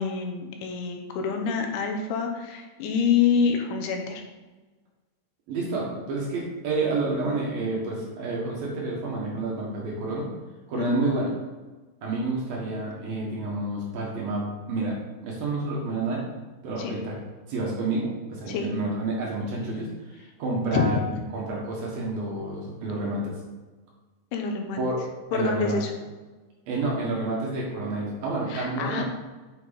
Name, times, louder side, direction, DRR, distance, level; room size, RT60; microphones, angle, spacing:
voice 1, 0.0-4.2 10.8-11.0 16.8-16.9 18.5-18.7 20.7-20.9 24.3-24.8 25.3-25.9 28.5-29.0, left 6 dB, 80° left, 3 dB, 3.3 m, -26 dB
voice 2, 5.5-10.3 10.7-11.3 12.0-14.9 15.2-16.2 16.6-17.2 17.5-21.0 21.3-23.3 24.8-25.0 25.3-25.8 26.7-29.0, right 2 dB, 60° right, -4 dB, 2.9 m, -29 dB
9.3 x 6.4 x 4.2 m, 1.2 s
omnidirectional pair, 5.5 m